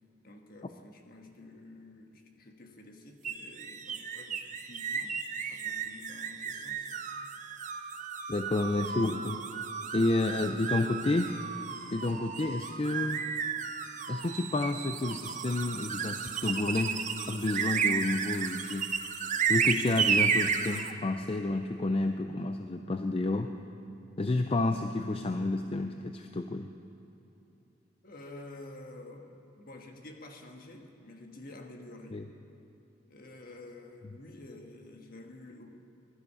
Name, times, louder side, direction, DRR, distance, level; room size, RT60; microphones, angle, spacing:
voice 1, 0.2-5.2 5.5-7.0 28.0-32.2 33.1-35.7, left 2 dB, 50° left, 3 dB, 1.4 m, -49 dB
sound 1, 3.2-20.9, right 6 dB, 40° right, 0.7 m, -33 dB
voice 2, 8.3-9.4 9.9-11.3 11.9-13.2 14.1-17.0 17.3-18.9 19.5-23.5 24.2-26.7 32.1-32.2, left 2 dB, 30° left, 6 dB, 0.5 m, -30 dB
20.0 x 12.0 x 5.6 m, 2.9 s
head